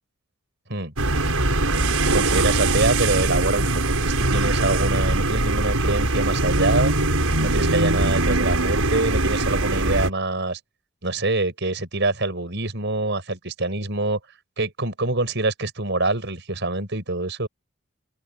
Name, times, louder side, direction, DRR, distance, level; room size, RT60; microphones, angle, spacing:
sound 1, 1.0-10.1, right 2 dB, 85° right, 5.6 m, -21 dB
voice 1, 2.1-6.9 7.4-10.6 11.0-14.2 14.6-17.5, right 2 dB, 55° right, 6.0 m, -25 dB
open air
head